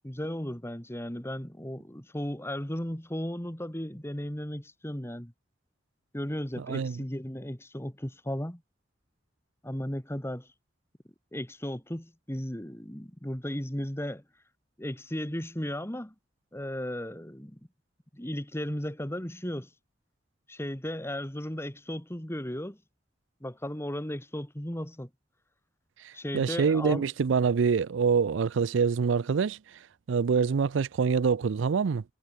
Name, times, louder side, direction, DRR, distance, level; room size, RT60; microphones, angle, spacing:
voice 1, 0.0-5.3 6.1-8.6 9.6-10.5 11.3-14.2 14.8-16.1 16.5-17.6 18.1-19.7 20.5-22.8 23.4-25.1 26.1-27.0, equal, 15° left, 2.3 m, -35 dB
voice 2, 6.6-7.0 26.0-32.0, right 5 dB, 80° right, 0.4 m, -26 dB
head